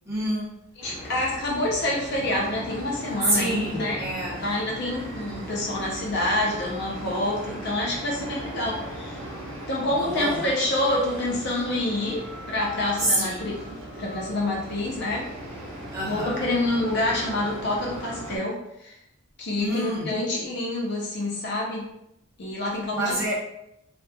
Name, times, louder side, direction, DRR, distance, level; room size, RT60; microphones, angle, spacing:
voice 1, 0.1-0.5 3.3-4.4 10.0-10.4 13.0-13.5 15.9-16.5 19.6-20.1 22.9-23.4, right 1 dB, 15° right, -8 dB, 0.8 m, -27 dB
voice 2, 0.8-4.0 4.4-9.2 9.7-12.2 12.5-15.2 16.1-19.0 19.4-21.9 22.4-23.2, left 1 dB, 55° left, -3 dB, 0.6 m, -27 dB
sound 1, 0.8-18.4, equal, 70° right, 0.7 m, -38 dB
2.9 x 2.4 x 2.2 m, 0.80 s
head